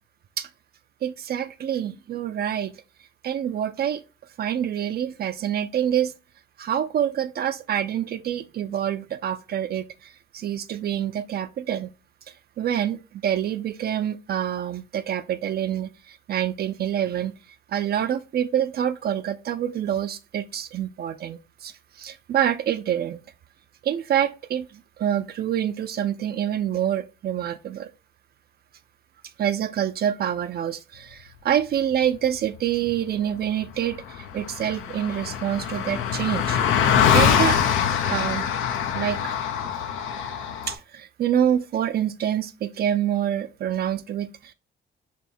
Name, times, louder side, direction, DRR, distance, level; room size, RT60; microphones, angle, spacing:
voice 1, 1.0-2.7 3.2-4.0 4.4-6.1 6.6-11.9 12.6-17.3 17.7-23.2 23.8-27.9 29.4-36.6 37.1-37.6 38.1-38.5 38.9-39.4 40.7-44.5, right 10 dB, 55° right, 0.4 m, -26 dB
Car passing by, 33.6-33.7 33.9-40.7, left 8 dB, 90° left, 0.6 m, -23 dB
3.4 x 2.7 x 4.2 m
cardioid pair, 90°, 20 cm